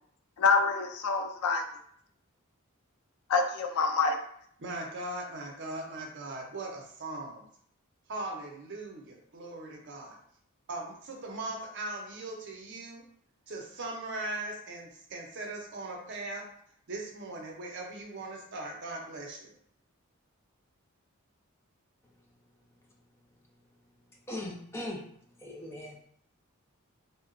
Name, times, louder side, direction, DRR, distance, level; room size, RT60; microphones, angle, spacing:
voice 1, 0.4-1.6 3.3-4.2, left 4 dB, 90° left, 4 dB, 0.4 m, -26 dB
voice 2, 4.6-7.4 8.1-10.2 10.7-13.0 13.5-16.4 16.9-19.5, right 2 dB, 55° right, 0 dB, 0.6 m, -39 dB
voice 3, 24.3-25.0 25.4-26.0, left 1 dB, 10° left, -1 dB, 0.4 m, -39 dB
2.8 x 2.2 x 2.5 m, 0.65 s
head